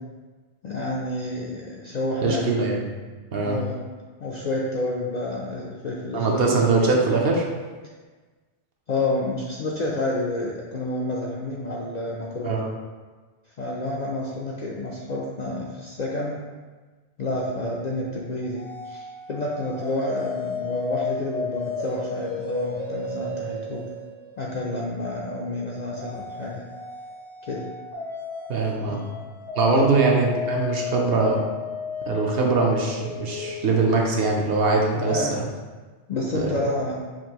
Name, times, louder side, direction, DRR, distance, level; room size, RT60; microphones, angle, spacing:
voice 1, 0.6-2.5 3.4-3.8 4.2-6.7 8.9-12.6 13.6-16.4 17.2-23.8 24.4-26.6 27.4-27.6 28.9-29.0 29.7-29.9 34.9-35.4 36.1-37.0, left 2 dB, 60° left, -4 dB, 0.4 m, -29 dB
voice 2, 2.2-2.9 3.3-3.6 6.1-7.5 12.4-12.7 28.5-29.0 29.6-31.4 32.1-35.4 36.3-36.5, right 3 dB, 65° right, -1 dB, 0.8 m, -22 dB
sound 1, 18.5-24.8 26.0-33.9, left 4 dB, 85° right, 1.4 m, -33 dB
5.9 x 2.6 x 2.8 m, 1.4 s
omnidirectional pair, 1.2 m